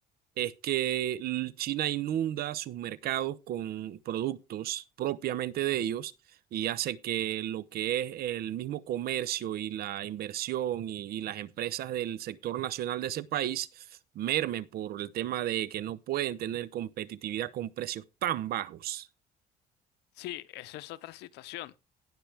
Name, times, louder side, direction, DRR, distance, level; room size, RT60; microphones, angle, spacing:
voice 1, 0.4-6.1 6.5-13.9 14.1-19.1, right 12 dB, 65° right, 0.8 m, -32 dB
voice 2, 20.2-21.8, left 16 dB, 85° left, 0.8 m, -42 dB
17.5 x 6.1 x 3.4 m
cardioid pair, 110°, 17 cm